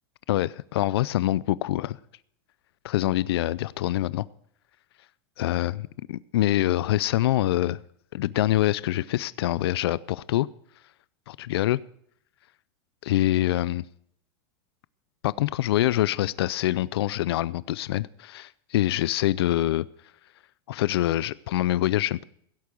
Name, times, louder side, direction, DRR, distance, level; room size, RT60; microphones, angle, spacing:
voice 1, 0.3-2.0 2.8-4.3 5.4-7.8 8.1-10.5 11.3-11.8 13.0-13.8 15.2-19.9 20.7-22.2, left 14 dB, 85° left, 20 dB, 0.4 m, -25 dB
16.5 x 8.4 x 6.2 m, 0.67 s
supercardioid pair, 160°, 13 cm